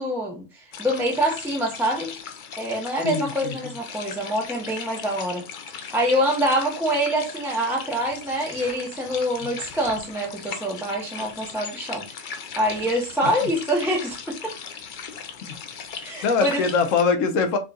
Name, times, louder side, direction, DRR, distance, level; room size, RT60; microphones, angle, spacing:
voice 1, 0.0-2.1 2.6-5.4 5.8-12.0 12.6-14.6 16.0-16.6, equal, ahead, 0.6 m, -25 dB
sound 1, 0.7-17.0, left 6 dB, 55° left, 0.5 m, -38 dB
voice 2, 3.0-3.5 16.2-17.6, left 5 dB, 80° left, 1.1 m, -22 dB
3.9 x 3.7 x 2.3 m
omnidirectional pair, 1.3 m